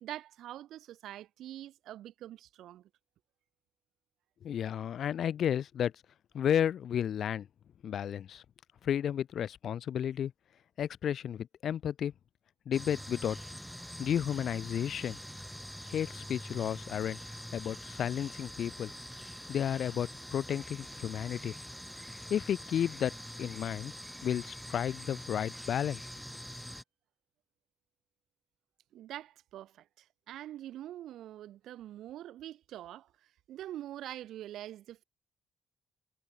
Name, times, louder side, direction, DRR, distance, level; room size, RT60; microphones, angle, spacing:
voice 1, 0.0-2.8 28.9-33.1 33.5-35.0, right 12 dB, 80° right, 0.8 m, -44 dB
voice 2, 4.4-5.9 6.3-7.5 7.8-8.4 8.8-10.3 10.8-12.1 12.7-13.4 14.0-15.2 15.9-18.9 19.5-21.5 22.3-23.1 23.4-23.9 24.2-26.1, left 9 dB, 70° left, 0.4 m, -32 dB
sound 1, 12.7-26.8, equal, ahead, 0.6 m, -45 dB
supercardioid pair, 55°, 0 cm